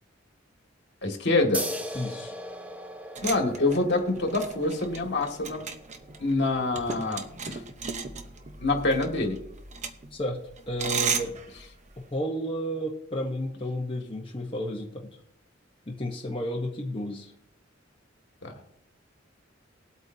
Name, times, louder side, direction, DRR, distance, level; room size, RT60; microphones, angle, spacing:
voice 1, 1.0-1.7 3.2-5.7 6.2-7.6 8.6-9.4 18.4-18.5, left 2 dB, 60° left, 2 dB, 2.0 m, -26 dB
sound 1, 1.5-8.7, right 1 dB, 10° right, 0.7 m, -40 dB
voice 2, 1.9-2.3 10.1-10.4 10.7-11.3 12.1-15.2 15.9-17.3, equal, 25° left, -1 dB, 1.0 m, -32 dB
sound 2, 3.1-12.1, right 5 dB, 40° right, 0.9 m, -35 dB
20.5 x 8.2 x 2.7 m, 0.81 s
head